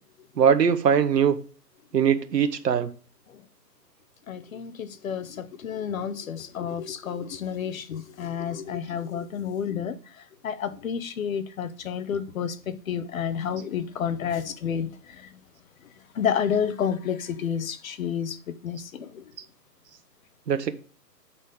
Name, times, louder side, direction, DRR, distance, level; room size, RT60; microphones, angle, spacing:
voice 1, 0.4-1.4 1.9-2.9 20.5-20.7, right 7 dB, 75° right, 1.1 m, -21 dB
voice 2, 4.3-10.0 10.4-14.9 15.2-15.3 16.1-18.4 18.6-19.2, left 8 dB, 55° left, 0.9 m, -30 dB
8.5 x 4.3 x 5.2 m
hypercardioid pair, 150°, 50 cm